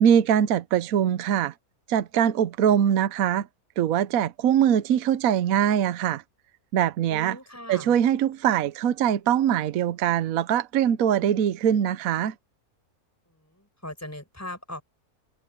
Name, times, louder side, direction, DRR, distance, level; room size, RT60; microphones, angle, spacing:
voice 1, 0.0-1.5 1.9-3.5 3.8-6.2 6.7-7.4 7.7-12.3, right 9 dB, 65° right, 1.1 m, -22 dB
voice 2, 7.1-8.0 13.3-14.8, left 1 dB, 10° left, 6.2 m, -40 dB
omnidirectional pair, 1.7 m